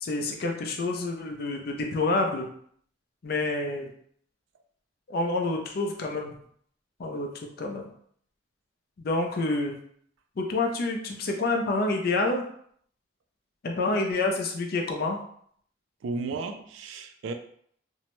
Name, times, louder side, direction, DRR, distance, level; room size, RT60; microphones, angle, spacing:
voice 1, 0.0-2.5 3.2-3.9 5.1-6.3 7.0-7.3 7.6-7.9 9.0-9.8 10.4-12.4 13.6-15.2, left 2 dB, 55° left, 2 dB, 0.4 m, -28 dB
voice 2, 16.0-17.3, right 3 dB, 85° right, 7 dB, 0.3 m, -34 dB
2.6 x 2.1 x 2.9 m, 0.63 s
head